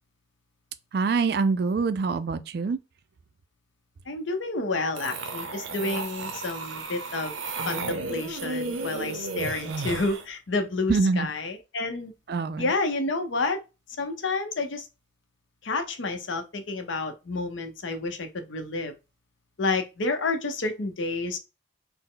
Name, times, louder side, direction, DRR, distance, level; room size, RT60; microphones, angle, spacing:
voice 1, 0.9-2.8 10.9-11.3 12.3-12.7, right 4 dB, 55° right, 0.3 m, -25 dB
voice 2, 4.1-7.3 7.7-12.1 12.6-13.6 14.0-14.9 15.6-18.9 19.6-21.4, left 3 dB, 80° left, 0.7 m, -29 dB
sound 1, 5.0-10.2, right 3 dB, 90° right, 0.6 m, -33 dB
4.2 x 2.1 x 3.8 m
head